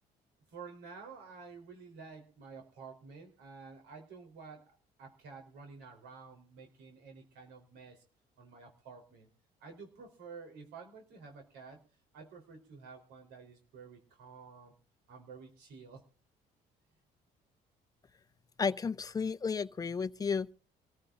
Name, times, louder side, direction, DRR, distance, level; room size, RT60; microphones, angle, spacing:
voice 1, 0.5-8.0 8.4-9.3 9.6-11.8 12.1-14.7 15.1-16.0, right 5 dB, 85° right, 4.0 m, -51 dB
voice 2, 18.6-20.5, left 5 dB, 20° left, 0.6 m, -33 dB
25.5 x 15.0 x 2.6 m
cardioid pair, 110°, 17 cm